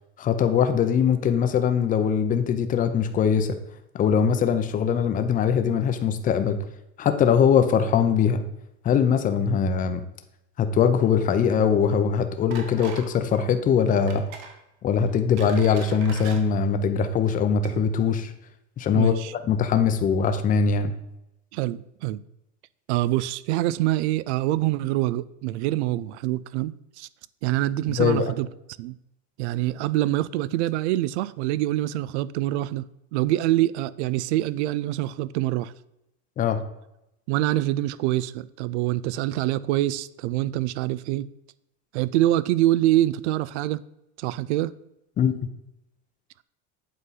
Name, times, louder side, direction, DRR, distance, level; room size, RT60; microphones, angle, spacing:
voice 1, 0.2-3.6 3.9-6.6 7.0-8.4 8.8-10.0 10.6-14.2 14.8-18.3 18.8-19.1 19.4-20.9 28.0-28.3 36.4-36.6 45.2-45.4, left 7 dB, 25° left, 0.6 m, -21 dB
sound 1, 12.5-13.1 13.3-13.5 14.1-14.5 15.1-16.4 17.1-17.3 17.6-17.7, right 6 dB, 60° right, 1.4 m, -41 dB
voice 2, 18.9-19.3 21.5-22.2 22.9-27.1 27.4-28.5 28.8-29.0 29.4-32.8 33.1-35.7 37.3-41.3 41.9-43.8 44.2-44.7, right 15 dB, 85° right, 0.5 m, -25 dB
8.3 x 3.8 x 5.6 m
supercardioid pair, 145°, 33 cm